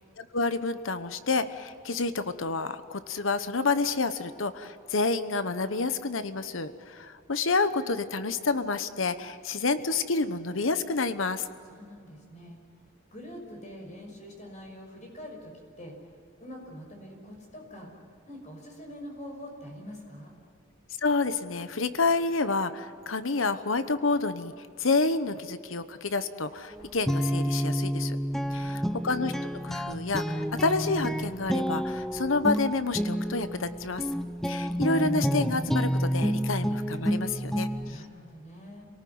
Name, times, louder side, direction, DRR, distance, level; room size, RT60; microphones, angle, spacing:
voice 1, 0.0-11.4 21.0-24.5 24.8-28.2 28.5-29.3 29.6-34.0 34.4-38.0, left 3 dB, 75° left, 12 dB, 1.1 m, -29 dB
voice 2, 11.7-12.6 13.1-15.5 15.8-15.9 16.4-17.9 18.3-20.3 28.3-29.0 37.9-38.9, equal, 35° left, 2 dB, 6.0 m, -44 dB
Guitar, 26.7-38.0, equal, ahead, 0.8 m, -29 dB
27.0 x 18.5 x 9.5 m, 2.4 s
head